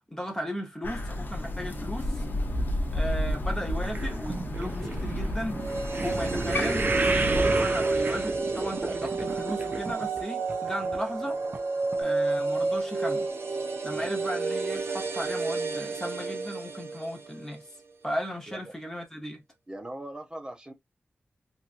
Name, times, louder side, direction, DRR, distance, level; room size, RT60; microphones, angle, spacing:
voice 1, 0.1-2.2 2.9-5.6 6.0-7.0 7.3-11.4 12.0-13.3 13.8-17.7 18.0-19.4, equal, 15° left, 1.0 m, -36 dB
Crow, 0.8-7.4, left 1 dB, 55° left, 0.6 m, -31 dB
sound 1, 3.8-10.2 10.5-11.0 11.5-11.6 11.9-12.0, right 3 dB, 45° right, 0.5 m, -31 dB
sound 2, 5.5-17.7 17.9-18.0, right 3 dB, 80° right, 0.7 m, -30 dB
voice 2, 13.9-14.3 18.5-18.7 19.7-20.7, right 1 dB, 20° right, 0.9 m, -41 dB
3.0 x 2.6 x 2.5 m
wide cardioid pair, 100°, 4 cm